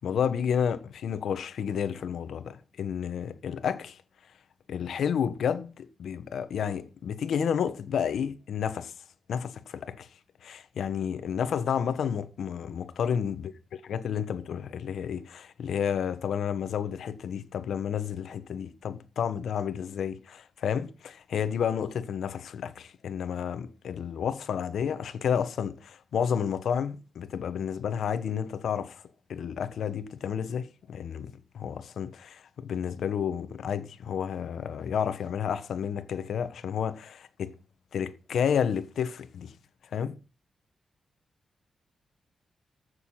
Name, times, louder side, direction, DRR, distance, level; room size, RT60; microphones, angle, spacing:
voice 1, 0.0-4.0 4.7-8.9 9.3-10.1 10.4-13.5 13.9-29.0 29.3-37.5 37.9-39.5 39.9-40.2, left 8 dB, 80° left, 1.1 m, -31 dB
14.5 x 6.7 x 5.6 m
wide cardioid pair, 140°, 0 cm